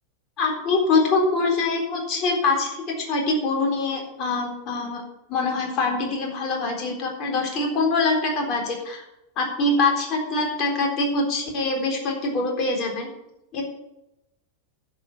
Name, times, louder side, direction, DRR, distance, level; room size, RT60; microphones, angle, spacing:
voice 1, 0.4-5.0 5.3-9.1 9.4-13.1 13.5-13.6, left 3 dB, 35° left, 1 dB, 3.9 m, -24 dB
11.0 x 7.5 x 8.5 m, 0.91 s
figure-of-eight pair, 90°, 0 cm